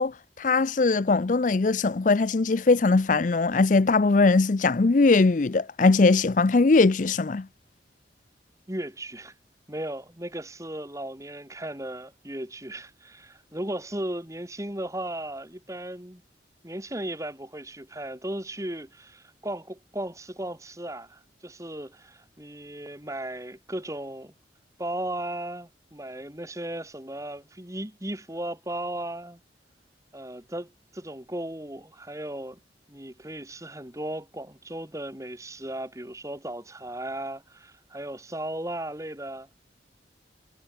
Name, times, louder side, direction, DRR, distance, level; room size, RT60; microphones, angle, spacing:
voice 1, 0.0-7.5, left 3 dB, 45° left, 0.5 m, -21 dB
voice 2, 8.7-9.3 9.7-16.2 16.6-24.3 24.8-29.4 30.1-32.6 32.9-39.5, right 1 dB, 15° right, 3.0 m, -36 dB
head